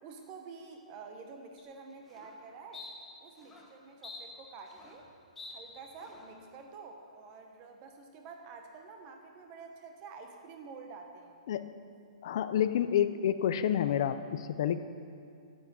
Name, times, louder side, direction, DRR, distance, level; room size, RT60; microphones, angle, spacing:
voice 1, 0.0-2.9 3.2-5.1 5.5-11.4, right 4 dB, 20° right, 3 dB, 1.1 m, -49 dB
sound 1, 1.6-1.7 2.1-2.3 2.7-2.9 3.4-3.7 4.0-5.1 5.4-5.5 6.0-6.3, left 4 dB, 5° left, 1.0 m, -48 dB
voice 2, 12.2-14.8, left 10 dB, 40° left, 12 dB, 0.6 m, -29 dB
10.5 x 8.4 x 9.1 m, 2.5 s
hypercardioid pair, 170°, 4 cm